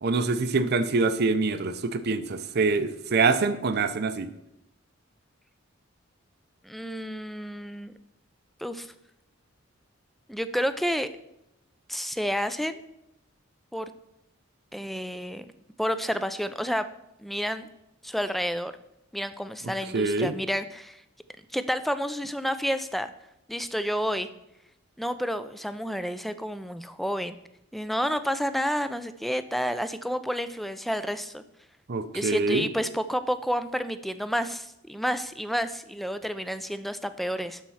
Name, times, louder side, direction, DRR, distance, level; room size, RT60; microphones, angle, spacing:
voice 1, 0.0-4.3 19.9-20.3 31.9-32.7, right 3 dB, 55° right, 11 dB, 0.6 m, -25 dB
voice 2, 6.6-7.9 8.6-8.9 10.3-11.1 11.9-12.8 13.7-13.9 14.7-15.5 15.8-16.9 17.2-17.7 18.0-18.7 19.1-21.0 21.5-23.1 23.5-24.3 25.0-27.4 27.7-31.4 32.1-37.6, equal, ahead, 11 dB, 0.4 m, -30 dB
12.0 x 4.4 x 5.6 m, 0.84 s
head